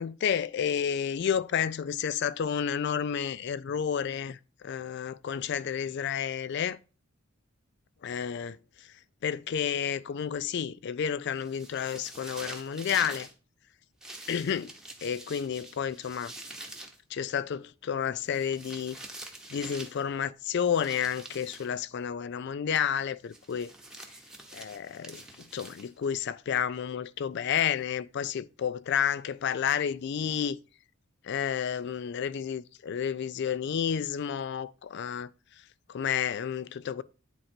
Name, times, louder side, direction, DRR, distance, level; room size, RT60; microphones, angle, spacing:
voice 1, 0.0-4.4 4.6-6.8 8.0-8.6 9.2-13.3 14.3-14.7 15.0-16.3 17.1-19.0 19.5-23.7 24.5-30.6 31.2-35.3 35.9-37.0, left 8 dB, 55° left, 0.3 m, -31 dB
sound 1, 11.4-13.3 14.0-17.0 18.2-20.0 20.7-21.7 23.3-26.1, right 1 dB, 5° right, 0.8 m, -45 dB
9.0 x 3.8 x 4.3 m
head